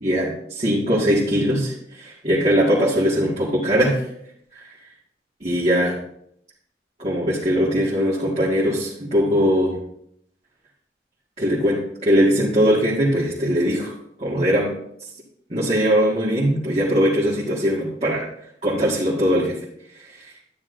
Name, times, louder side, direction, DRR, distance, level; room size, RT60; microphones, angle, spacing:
voice 1, 0.0-4.1 4.5-4.7 5.4-5.9 7.0-9.8 11.4-13.9 14.2-14.8 15.5-18.2 18.6-19.6 19.9-20.3, equal, 35° right, -6 dB, 2.0 m, -20 dB
12.0 x 9.7 x 2.7 m, 0.72 s
head